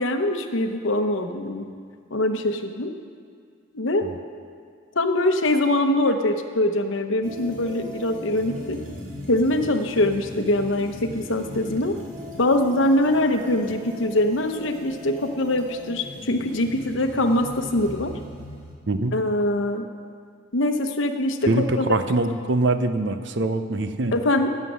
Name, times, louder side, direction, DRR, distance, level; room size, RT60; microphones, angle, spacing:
voice 1, 0.0-1.7 2.1-2.9 3.7-4.1 4.9-8.8 9.3-12.0 12.4-18.1 19.1-19.9 20.5-22.0 24.1-24.5, left 1 dB, 70° left, 6 dB, 0.9 m, -23 dB
sound 1, 7.2-18.7, left 1 dB, 80° right, 2.2 m, -39 dB
voice 2, 21.5-24.2, right 2 dB, 60° right, 10 dB, 0.6 m, -23 dB
15.5 x 7.5 x 6.2 m, 2.1 s
head